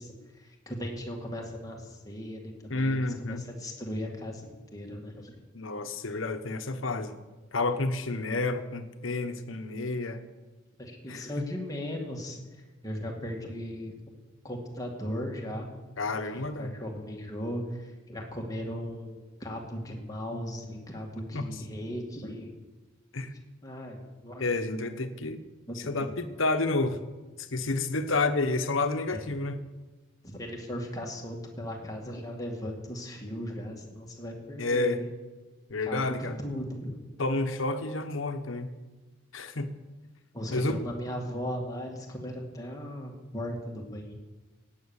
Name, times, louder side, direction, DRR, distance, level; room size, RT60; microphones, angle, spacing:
voice 1, 0.0-5.4 10.8-12.4 12.8-13.9 14.4-15.7 16.3-22.5 23.2-23.3 23.6-24.4 25.0-25.1 25.7-26.1 29.1-29.2 30.2-35.1 35.8-37.0 40.3-44.1, equal, 20° left, 0 dB, 2.2 m, -37 dB
voice 2, 2.7-3.5 5.5-7.2 7.5-10.2 11.1-11.3 16.0-16.7 21.3-21.5 23.1-23.3 24.4-25.4 25.8-27.0 27.4-29.6 34.6-35.0 35.7-36.4 37.2-38.7 39.3-39.7 40.5-40.8, left 2 dB, 75° left, 8 dB, 1.2 m, -30 dB
16.5 x 9.5 x 7.2 m, 1.2 s
head